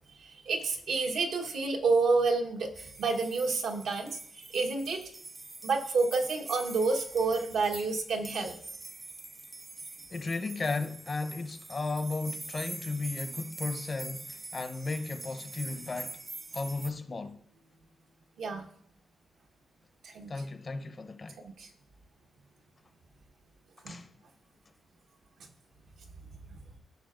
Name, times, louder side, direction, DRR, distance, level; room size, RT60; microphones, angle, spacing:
voice 1, 0.2-5.0 5.6-8.5 18.4-18.7 20.0-20.3 21.4-21.7 23.8-24.0 26.5-26.6, right 4 dB, 75° right, 1.1 m, -29 dB
sound 1, 2.7-16.9, right 2 dB, 25° right, 0.5 m, -44 dB
voice 2, 10.1-16.2 16.5-17.4 20.3-21.4 23.9-24.1, left 3 dB, 35° left, 0.7 m, -35 dB
15.0 x 5.7 x 2.5 m
cardioid pair, 95°, 0 cm